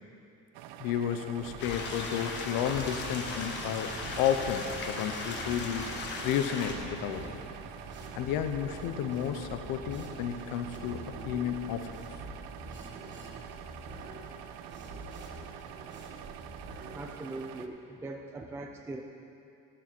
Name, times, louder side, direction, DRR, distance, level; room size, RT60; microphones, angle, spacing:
sound 1, 0.5-17.7, right 10 dB, 85° right, 0.7 m, -47 dB
voice 1, 0.8-7.4 8.2-12.0, left 9 dB, 80° left, 7 dB, 0.9 m, -32 dB
sound 2, 1.4-17.0, right 2 dB, 35° right, 1.4 m, -45 dB
sound 3, 1.6-6.7, left 3 dB, 35° left, 1.3 m, -38 dB
voice 2, 16.9-19.0, right 2 dB, 10° right, 2 dB, 0.4 m, -41 dB
15.0 x 11.0 x 4.5 m, 2.6 s
cardioid pair, 175°, 33 cm